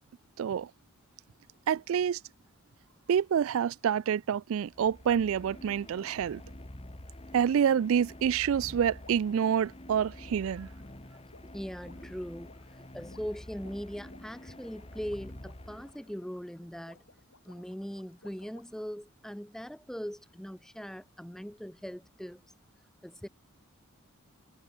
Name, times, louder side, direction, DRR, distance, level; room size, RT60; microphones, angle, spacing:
voice 1, 0.4-0.7 1.7-2.2 3.1-6.4 7.3-10.7, right 8 dB, 65° right, 0.3 m, -27 dB
sound 1, 4.6-16.3, left 1 dB, 25° left, 1.7 m, -48 dB
sound 2, 9.0-18.9, left 3 dB, 60° left, 3.6 m, -61 dB
voice 2, 11.5-17.0 17.5-22.4 23.0-23.3, equal, ahead, 0.7 m, -40 dB
head